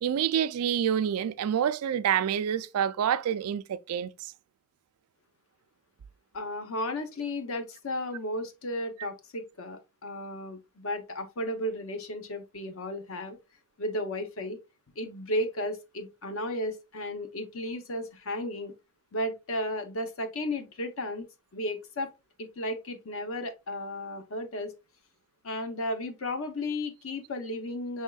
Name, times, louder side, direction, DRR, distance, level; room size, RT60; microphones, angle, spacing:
voice 1, 0.0-4.1, right 9 dB, 85° right, 0.3 m, -27 dB
voice 2, 6.3-13.4 13.8-14.6 15.0-18.7 19.1-21.3 21.5-22.1 22.4-24.7 25.4-28.0, left 1 dB, 65° left, 0.7 m, -34 dB
5.4 x 3.5 x 2.2 m
head